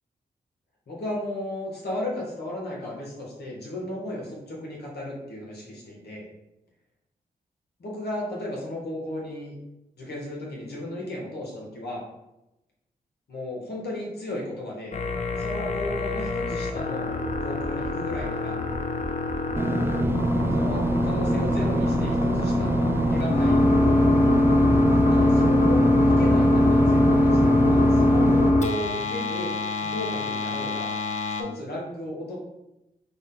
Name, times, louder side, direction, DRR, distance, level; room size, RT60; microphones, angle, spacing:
voice 1, 0.9-6.3 7.8-9.5 10.0-12.0 13.3-15.0 15.4-17.1 17.4-18.6 20.5-23.7 24.9-30.9 31.2-32.4, left 1 dB, 70° left, -3 dB, 1.1 m, -34 dB
sound 1, 14.9-31.4, left 1 dB, 45° left, 0.5 m, -23 dB
Engine / Mechanisms, 19.6-28.5, right 1 dB, 15° right, 0.3 m, -25 dB
3.7 x 2.1 x 3.8 m, 0.90 s
cardioid pair, 50°, 17 cm